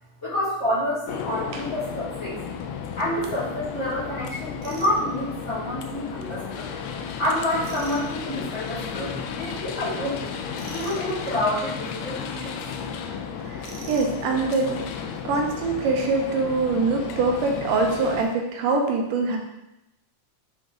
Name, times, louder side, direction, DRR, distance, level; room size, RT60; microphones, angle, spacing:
voice 1, 0.2-2.4 2.9-6.7 7.2-10.3 10.7-12.6, left 1 dB, 25° left, -11 dB, 2.4 m, -28 dB
sound 1, 1.1-18.2, left 6 dB, 80° left, 1.6 m, -34 dB
Tools, 4.6-5.0 7.6-8.1 10.5-11.0 13.6-14.2, right 4 dB, 70° right, 1.9 m, -41 dB
voice 2, 13.4-14.8 15.2-19.4, right 3 dB, 85° right, 2 dB, 2.5 m, -24 dB
8.3 x 3.8 x 3.8 m, 0.90 s
omnidirectional pair, 3.7 m